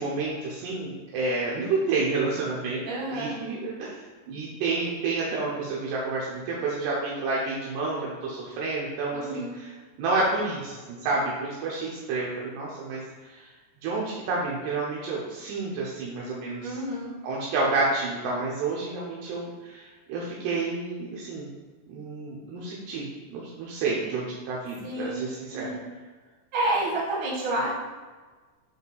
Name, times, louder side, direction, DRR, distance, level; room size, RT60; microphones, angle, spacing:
voice 1, 0.0-2.9 3.1-4.0 4.3-9.7 10.0-13.0 13.3-13.4 13.8-16.7 17.2-21.5 21.9-25.7, right 3 dB, 85° right, -5 dB, 2.3 m, -29 dB
voice 2, 2.9-3.4 9.1-9.6 16.6-17.1 24.8-25.9 26.5-27.7, right 1 dB, 55° right, -5 dB, 2.2 m, -29 dB
7.9 x 5.4 x 2.3 m, 1.4 s
omnidirectional pair, 5.7 m